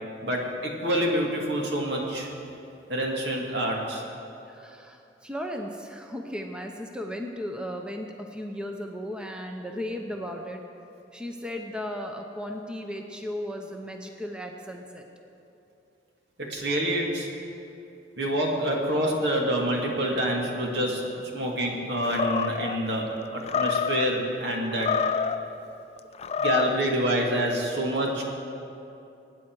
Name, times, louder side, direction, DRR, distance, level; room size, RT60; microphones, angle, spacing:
voice 1, 0.2-2.3 2.9-4.0 16.5-17.3 18.2-21.0 21.3-24.9 26.4-28.2, right 1 dB, 70° right, -1 dB, 2.4 m, -27 dB
voice 2, 4.5-10.6 11.1-15.0, equal, 5° right, 2 dB, 0.8 m, -36 dB
Animal, 22.0-22.8 23.4-24.1 24.7-25.5 26.1-26.8, left 6 dB, 35° left, 0.4 m, -27 dB
24.0 x 9.7 x 4.8 m, 2.7 s
head